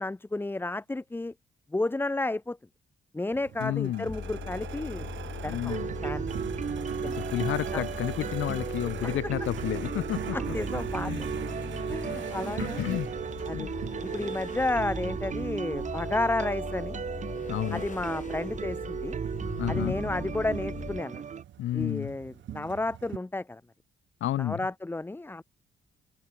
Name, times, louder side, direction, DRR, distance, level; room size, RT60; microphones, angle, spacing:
voice 1, 0.0-1.3 1.7-2.6 3.1-5.1 5.4-6.3 7.0-7.2 7.7-7.8 9.0-9.1 10.3-11.3 11.9-12.8 13.5-13.7 14.0-17.0 17.7-19.2 19.7-21.2 21.7-23.6 24.4-25.4, left 2 dB, 10° left, 0.7 m, -32 dB
sound 1, 3.3-23.2, right 11 dB, 70° right, 2.4 m, -43 dB
voice 2, 3.6-4.1 5.5-5.9 7.0-10.4 11.0-11.2 12.1-12.2 12.6-13.1 13.5-13.7 17.5-17.8 19.6-20.0 21.6-22.1 24.2-24.6, left 13 dB, 80° left, 3.1 m, -31 dB
sound 2, 4.1-21.0, left 5 dB, 40° left, 4.3 m, -40 dB
sound 3, 5.7-21.4, right 7 dB, 35° right, 0.8 m, -35 dB
open air
cardioid pair, 90°, 20 cm